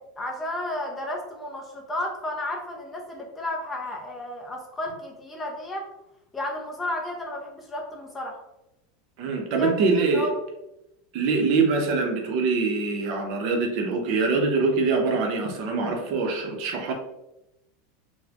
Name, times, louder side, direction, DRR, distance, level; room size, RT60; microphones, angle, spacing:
voice 1, 0.0-5.9 6.3-8.4 9.6-9.7 10.1-10.3, left 1 dB, 15° left, 0 dB, 0.5 m, -32 dB
voice 2, 9.2-10.3 11.1-16.9, right 4 dB, 50° right, 2 dB, 0.6 m, -24 dB
4.0 x 2.1 x 2.8 m, 0.90 s
supercardioid pair, 165°, 0 cm